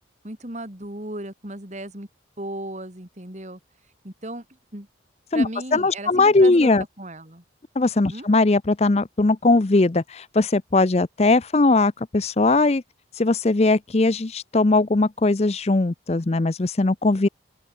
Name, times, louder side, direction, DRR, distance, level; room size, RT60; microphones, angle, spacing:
voice 1, 0.2-2.1 2.4-3.6 4.0-4.4 4.7-4.9 5.3-7.4 8.1-8.3, right 1 dB, 35° right, 3.1 m, -35 dB
voice 2, 5.3-6.8 7.8-12.8 13.2-17.3, left 2 dB, 35° left, 0.6 m, -19 dB
open air
head